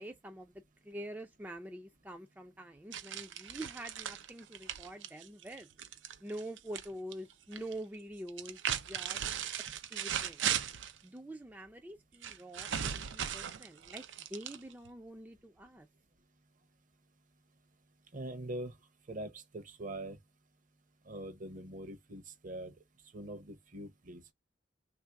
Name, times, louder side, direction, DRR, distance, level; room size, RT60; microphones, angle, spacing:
voice 1, 0.0-5.7 6.2-9.2 9.9-10.5 11.0-15.9, right 1 dB, 10° right, 0.4 m, -46 dB
sound 1, 2.9-6.9 7.1-7.7 8.3-11.0 12.2-14.9, right 9 dB, 85° right, 0.5 m, -37 dB
voice 2, 18.1-18.7 19.1-20.2 21.1-22.7 23.1-24.3, right 1 dB, 45° right, 0.7 m, -43 dB
3.2 x 2.5 x 4.5 m
head